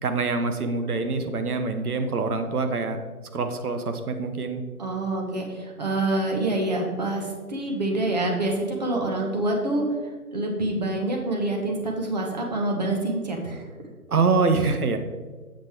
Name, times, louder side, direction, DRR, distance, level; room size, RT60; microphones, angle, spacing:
voice 1, 0.0-3.0 3.3-4.6 14.1-15.0, right 4 dB, 70° right, 7 dB, 1.1 m, -25 dB
voice 2, 4.8-9.9 10.3-13.7, right 2 dB, 30° right, 0 dB, 1.0 m, -26 dB
7.6 x 5.3 x 4.4 m, 1.4 s
figure-of-eight pair, 155°, 46 cm